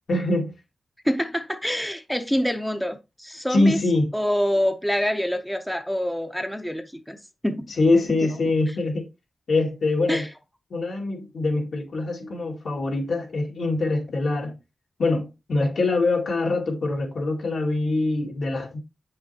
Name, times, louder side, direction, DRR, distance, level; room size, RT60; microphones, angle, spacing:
voice 1, 0.1-0.5 3.5-4.1 7.8-9.1 9.5-10.3 10.7-14.6 15.0-18.8, left 2 dB, 80° left, 2.2 m, -24 dB
voice 2, 1.0-3.8 4.1-7.2 7.4-7.7 8.2-8.3 10.1-10.3, equal, 5° left, 0.7 m, -26 dB
8.6 x 6.5 x 2.9 m
wide cardioid pair, 160°, 0 cm